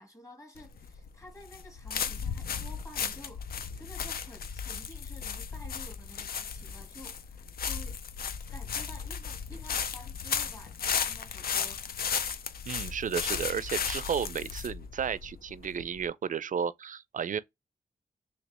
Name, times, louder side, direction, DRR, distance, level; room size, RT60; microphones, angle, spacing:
voice 1, 0.0-8.0 8.5-11.9, left 1 dB, 20° left, 1.5 m, -51 dB
sound 1, 0.6-16.1, left 7 dB, 75° left, 0.4 m, -35 dB
voice 2, 12.7-17.4, right 7 dB, 55° right, 0.4 m, -33 dB
3.2 x 3.0 x 2.9 m
cardioid pair, 55°, 16 cm